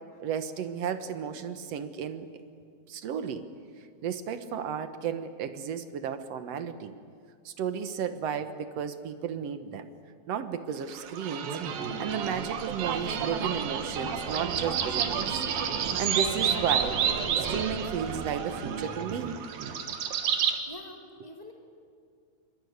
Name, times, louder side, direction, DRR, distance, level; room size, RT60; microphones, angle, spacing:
voice 1, 0.2-2.4 2.9-3.5 4.0-6.9 7.5-9.9 10.3-11.5 12.0-15.4 16.0-17.0 17.4-19.4, right 7 dB, 65° right, 9 dB, 1.7 m, -33 dB
sound 1, 10.9-20.6, right 7 dB, 80° right, 3.4 m, -30 dB
voice 2, 20.7-21.5, left 1 dB, 10° right, 1 dB, 2.6 m, -46 dB
26.0 x 23.5 x 9.6 m, 2.2 s
omnidirectional pair, 4.1 m